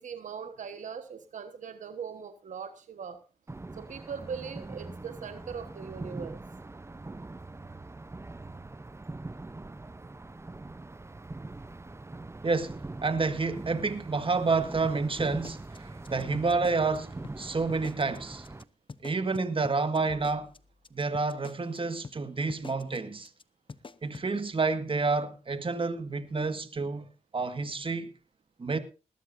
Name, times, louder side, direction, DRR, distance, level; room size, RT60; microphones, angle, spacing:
voice 1, 0.0-3.2 3.7-6.4, right 6 dB, 85° right, 1.3 m, -40 dB
sound 1, 3.5-18.6, right 2 dB, 20° right, 0.7 m, -42 dB
voice 2, 12.4-18.5 19.0-20.5 20.9-23.3 24.0-28.1 28.6-28.8, right 4 dB, 45° right, 1.7 m, -29 dB
sound 2, 14.8-17.0 17.2-17.4 17.7-18.2 18.4-18.6 18.9-21.8 22.0-22.2 22.5-23.0 23.2-23.4 23.7-24.3, left 4 dB, 45° left, 0.8 m, -45 dB
19.5 x 12.5 x 2.6 m
cardioid pair, 55°, 13 cm